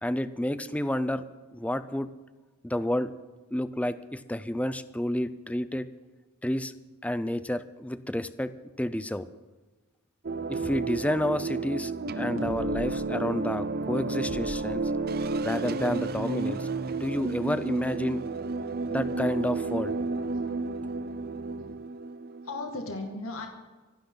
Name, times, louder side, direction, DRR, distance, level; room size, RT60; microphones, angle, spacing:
voice 1, 0.0-1.3 1.5-2.1 2.6-3.1 3.5-5.9 6.4-6.7 7.0-9.3 10.5-14.9 15.4-16.7 17.0-18.2 18.9-19.9, left 1 dB, 5° left, 13 dB, 0.6 m, -30 dB
sound 1, 10.2-22.8, right 3 dB, 45° right, 0.6 m, -31 dB
sound 2, 10.5-10.8 12.4-12.9 14.2-15.4, equal, 80° right, 3.1 m, -42 dB
voice 2, 20.1-20.6 21.6-21.7 22.4-23.5, left 2 dB, 85° left, 2 dB, 2.3 m, -37 dB
25.0 x 12.0 x 4.0 m, 1.2 s
head